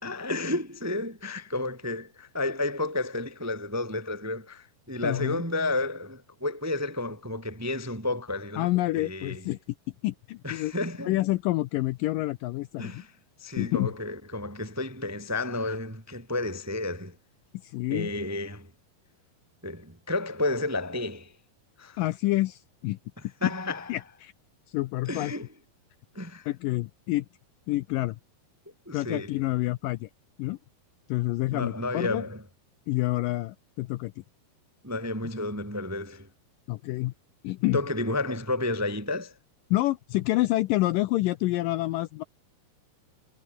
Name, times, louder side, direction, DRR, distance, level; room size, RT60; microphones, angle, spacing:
voice 1, 0.0-8.7 8.9-9.5 10.4-11.2 12.8-13.1 13.4-17.1 17.9-18.7 19.6-21.3 21.8-22.0 23.2-23.9 25.0-25.5 26.1-26.5 28.8-29.4 31.5-32.4 34.8-36.3 37.7-39.3, left 2 dB, 10° right, 0.9 m, -31 dB
voice 2, 5.0-5.4 8.6-9.6 10.0-10.7 11.1-13.0 13.6-13.9 17.6-18.1 22.0-23.0 23.4-23.5 23.9-24.3 24.7-25.3 26.5-27.3 27.7-28.2 28.9-30.1 30.4-30.6 31.1-32.2 32.9-34.1 36.7-37.1 37.4-37.8 39.7-42.2, left 18 dB, 85° left, 2.0 m, -28 dB
omnidirectional pair, 4.5 m